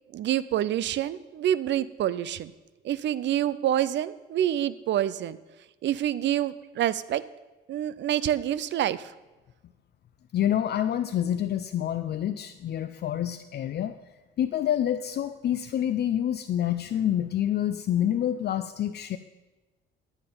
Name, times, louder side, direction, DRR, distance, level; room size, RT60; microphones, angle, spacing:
voice 1, 0.1-2.5 2.8-5.4 5.8-7.2 7.7-9.1, right 11 dB, 65° right, 17 dB, 0.5 m, -27 dB
voice 2, 10.3-13.9 14.4-19.2, left 10 dB, 55° left, 9 dB, 0.5 m, -27 dB
9.6 x 8.8 x 5.4 m, 1.1 s
cardioid pair, 90°, 20 cm